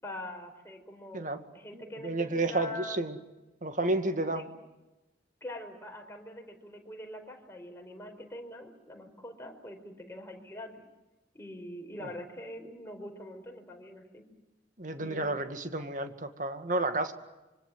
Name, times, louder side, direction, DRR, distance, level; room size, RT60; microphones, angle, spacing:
voice 1, 0.0-3.0 4.3-4.4 5.4-10.9 11.3-14.2 15.0-15.3, left 1 dB, 15° left, 2 dB, 4.8 m, -44 dB
voice 2, 1.7-3.2 3.6-4.5 12.0-12.1 14.8-17.1, right 2 dB, 45° right, 8 dB, 2.1 m, -31 dB
26.5 x 24.5 x 7.7 m, 1.0 s
head